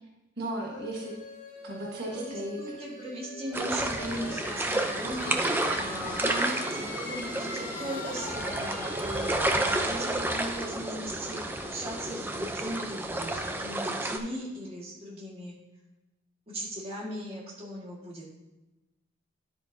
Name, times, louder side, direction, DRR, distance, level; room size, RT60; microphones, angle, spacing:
voice 1, 0.4-1.2 1.6-2.8 5.9-6.9, right 1 dB, 50° right, -3 dB, 1.5 m, -36 dB
sound 1, 0.6-12.1, left 2 dB, 40° left, 1.2 m, -42 dB
voice 2, 2.1-6.2 6.9-15.6 16.5-18.3, equal, 30° right, -4 dB, 1.8 m, -38 dB
sound 2, 3.5-14.2, right 1 dB, 10° right, 0.5 m, -31 dB
10.5 x 8.2 x 2.7 m, 1.1 s
head